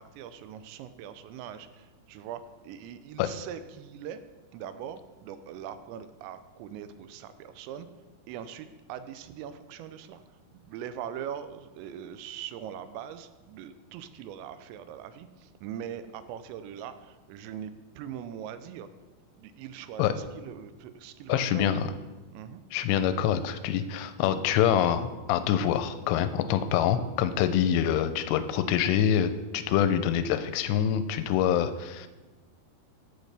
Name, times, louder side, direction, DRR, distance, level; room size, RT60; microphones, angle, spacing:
voice 1, 0.0-4.2 4.5-7.9 8.3-10.2 10.5-18.9 19.4-21.7 22.3-22.6, right 9 dB, 85° right, 11 dB, 2.9 m, -41 dB
voice 2, 21.3-21.9 22.7-32.1, left 9 dB, 85° left, 11 dB, 2.6 m, -25 dB
15.5 x 6.4 x 3.4 m, 1.2 s
omnidirectional pair, 5.1 m